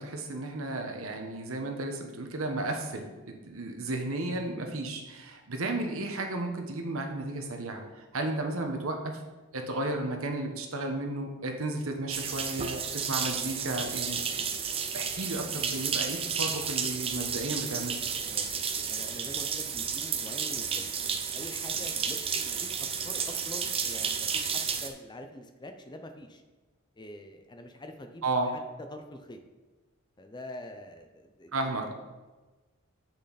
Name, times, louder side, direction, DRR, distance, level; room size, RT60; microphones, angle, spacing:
voice 1, 0.0-9.2 9.5-14.2 14.9-17.9 28.2-28.5 31.5-31.9, right 2 dB, 75° right, 4 dB, 1.2 m, -33 dB
sound 1, 12.1-24.9, right 6 dB, 25° right, 0.6 m, -32 dB
voice 2, 18.2-20.8 21.3-22.7 23.0-26.4 27.0-28.5 28.9-29.4 30.2-31.9, left 1 dB, 20° left, 6 dB, 0.6 m, -45 dB
8.0 x 6.6 x 4.1 m, 1.2 s
head